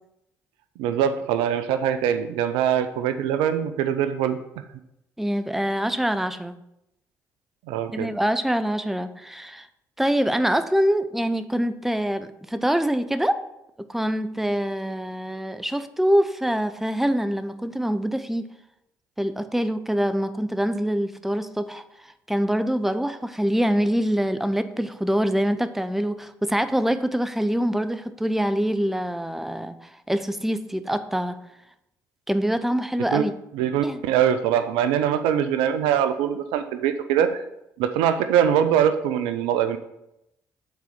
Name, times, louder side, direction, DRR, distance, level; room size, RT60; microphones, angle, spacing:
voice 1, 0.8-4.4 7.7-8.1 33.1-33.2 33.5-37.4 37.8-39.8, right 9 dB, 80° right, 0.4 m, -22 dB
voice 2, 5.2-6.6 7.9-9.7 10.0-13.4 13.9-18.4 19.2-31.4 32.3-33.3 33.8-34.0, equal, 5° right, 0.5 m, -25 dB
6.0 x 4.2 x 5.1 m
hypercardioid pair, 50°, 9 cm